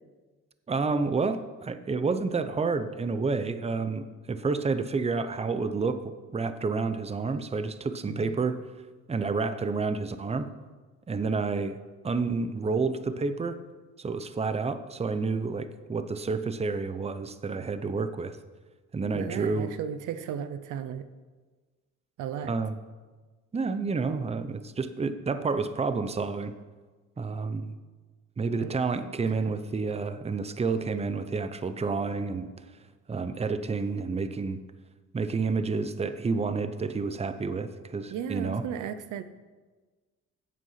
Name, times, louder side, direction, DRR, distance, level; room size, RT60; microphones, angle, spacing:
voice 1, 0.7-8.6 9.1-10.5 11.1-11.8 12.0-13.6 14.0-18.4 18.9-19.7 22.5-22.8 23.5-26.5 27.2-27.8 28.4-32.5 33.1-34.6 35.1-38.6, right 4 dB, 20° right, 11 dB, 0.7 m, -29 dB
voice 2, 8.1-8.4 19.1-21.1 22.2-22.6 28.6-28.7 29.2-29.6 38.1-39.2, right 8 dB, 80° right, 11 dB, 0.7 m, -35 dB
9.6 x 8.2 x 5.7 m, 1.3 s
cardioid pair, 90°, 30 cm